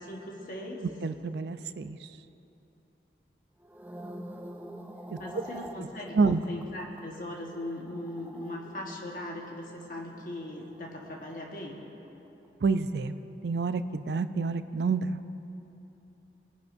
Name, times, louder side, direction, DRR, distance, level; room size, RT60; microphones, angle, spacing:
voice 1, 0.0-0.8 5.2-6.2 6.5-11.8, left 1 dB, 50° left, -1 dB, 1.4 m, -39 dB
voice 2, 1.0-2.0 5.1-5.2 6.2-6.4 12.6-13.2 13.4-15.2, right 4 dB, 70° right, 11 dB, 0.4 m, -28 dB
sound 1, 3.6-12.0 12.3-12.6, right 1 dB, 10° right, 0.5 m, -47 dB
21.0 x 10.5 x 2.6 m, 3.0 s
head